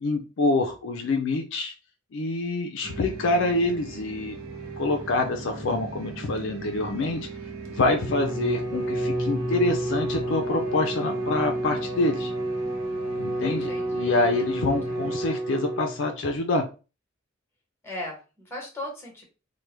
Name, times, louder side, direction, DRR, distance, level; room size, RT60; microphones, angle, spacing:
voice 1, 0.0-1.7 2.1-4.4 4.8-7.2 7.7-12.3 13.2-16.7, left 2 dB, 60° left, 4 dB, 0.4 m, -26 dB
sound 1, 2.8-15.2, right 3 dB, 80° right, 0.7 m, -40 dB
Bowed string instrument, 7.9-16.2, right 1 dB, 10° right, 1.0 m, -30 dB
voice 2, 13.4-15.0 17.8-19.2, left 1 dB, 10° left, -1 dB, 1.1 m, -39 dB
3.2 x 2.1 x 3.1 m, 0.32 s
head